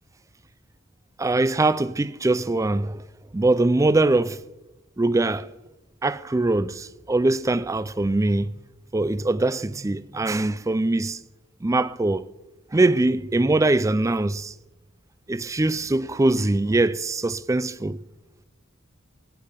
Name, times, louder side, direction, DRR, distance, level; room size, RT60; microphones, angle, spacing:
voice 1, 1.2-3.0 3.3-4.4 5.0-5.5 6.0-8.5 8.9-11.2 11.6-12.3 12.7-14.5 15.3-18.0, right 2 dB, 15° right, 0.4 m, -22 dB
17.5 x 9.9 x 5.2 m
head